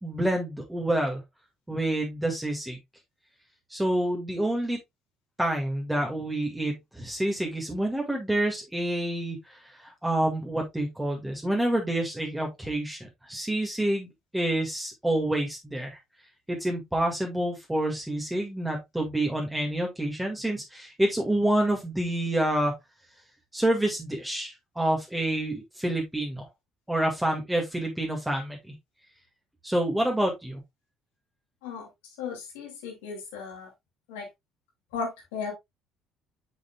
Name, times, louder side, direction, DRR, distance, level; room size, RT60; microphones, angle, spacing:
voice 1, 0.0-1.2 1.7-2.8 3.7-4.8 5.4-14.1 14.3-16.0 16.5-22.8 23.5-26.5 26.9-28.7 29.6-30.6, right 1 dB, 10° right, 2.1 m, -28 dB
voice 2, 32.2-33.7 34.1-34.3 34.9-35.5, left 5 dB, 70° left, 2.7 m, -35 dB
6.9 x 6.5 x 2.4 m
figure-of-eight pair, 55°, 0 cm